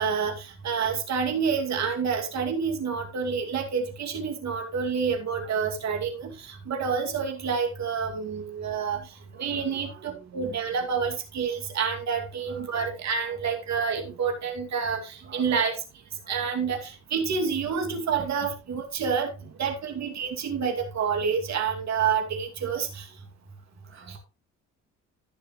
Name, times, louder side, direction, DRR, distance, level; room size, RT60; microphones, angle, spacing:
voice 1, 0.0-15.8 16.3-19.3 19.6-23.1 24.1-24.2, right 6 dB, 65° right, 2.5 m, -28 dB
voice 2, 9.3-10.5 12.5-12.7 15.2-15.6 16.2-16.3 23.8-24.2, right 7 dB, 45° right, 2.0 m, -48 dB
15.0 x 6.3 x 3.1 m
cardioid pair, 90°, 30 cm